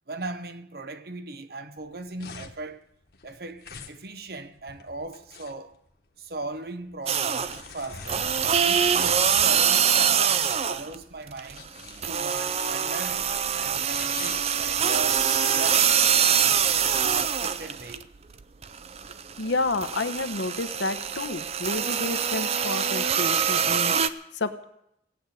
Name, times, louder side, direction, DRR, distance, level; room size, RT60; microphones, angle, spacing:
voice 1, 0.1-2.9 3.2-5.8 6.2-8.3 8.6-11.7 12.1-13.3 13.5-16.0 16.4-16.6 17.0-18.1, right 2 dB, 55° right, 0.8 m, -38 dB
sound 1, 1.8-15.3, left 5 dB, 60° left, 1.3 m, -44 dB
sound 2, 7.1-7.7 8.0-10.9 11.3-18.0 18.4-24.1, right 7 dB, 35° right, 0.5 m, -24 dB
voice 2, 19.4-24.6, left 3 dB, 90° left, 1.0 m, -30 dB
17.0 x 7.9 x 8.4 m
head